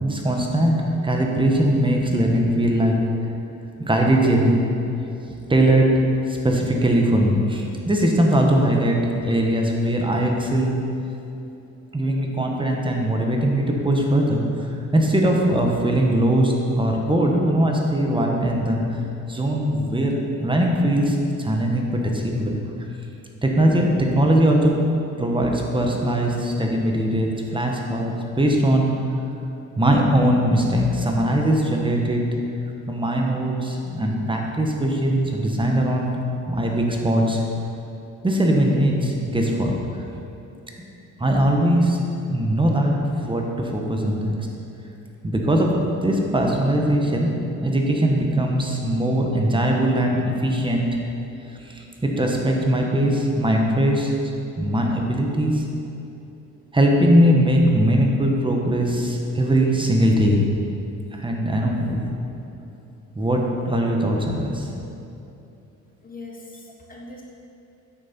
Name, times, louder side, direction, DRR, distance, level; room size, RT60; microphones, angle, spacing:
voice 1, 0.0-3.0 3.8-4.6 5.5-5.9 6.3-10.8 11.9-14.4 14.9-18.8 19.3-22.6 23.4-24.7 25.2-28.9 29.7-32.2 32.9-37.4 38.2-39.7 41.2-42.0 42.3-44.4 45.2-47.3 47.6-50.9 51.5-54.1 54.6-55.6 56.7-60.4 61.1-62.2 63.1-64.7, right 1 dB, 15° right, 0 dB, 1.3 m, -20 dB
voice 2, 66.0-67.2, left 2 dB, 30° left, -2 dB, 1.2 m, -40 dB
9.1 x 6.4 x 4.4 m, 2.8 s
cardioid pair, 90°, 30 cm